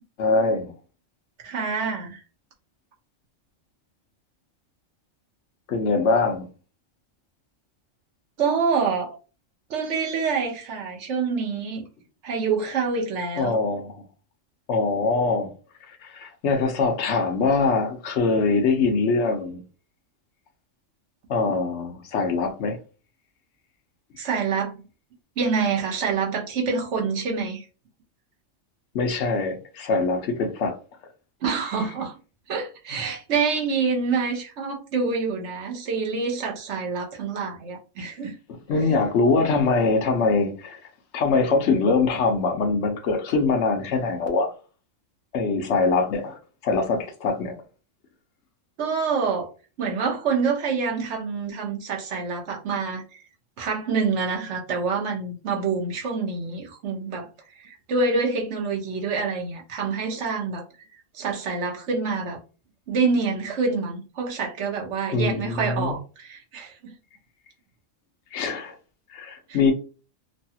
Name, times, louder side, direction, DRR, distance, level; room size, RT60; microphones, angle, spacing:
voice 1, 0.2-0.7 5.7-6.5 13.4-14.0 14.7-15.5 15.9-19.6 21.3-22.8 28.9-30.8 38.5-40.8 41.1-44.5 45.3-47.6 65.1-65.9 68.3-68.8 69.1-69.7, left 4 dB, 65° left, 1.0 m, -23 dB
voice 2, 1.4-2.2 8.4-9.2 9.7-11.8 12.2-13.6 24.2-24.7 25.4-27.7 31.4-32.1 32.5-38.3 48.8-49.5 49.8-53.2 53.6-60.6 61.1-62.4 62.9-66.9 69.5-69.6, right 5 dB, 65° right, 1.0 m, -26 dB
3.2 x 2.2 x 2.7 m
omnidirectional pair, 1.3 m